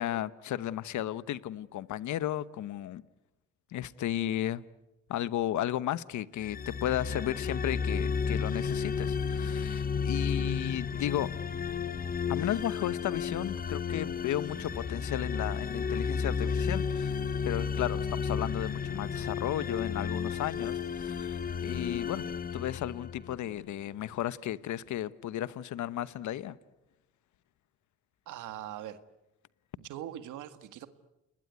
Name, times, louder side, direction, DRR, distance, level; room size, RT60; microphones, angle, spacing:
voice 1, 0.0-3.0 3.7-4.6 5.1-11.3 12.3-17.2 17.4-22.3 22.5-26.6, left 12 dB, 75° left, 1.0 m, -34 dB
sound 1, 6.4-23.5, left 6 dB, 30° left, 0.9 m, -33 dB
voice 2, 28.3-29.0 29.8-30.9, right 11 dB, 85° right, 1.8 m, -41 dB
30.0 x 21.0 x 9.4 m
cardioid pair, 90°, 30 cm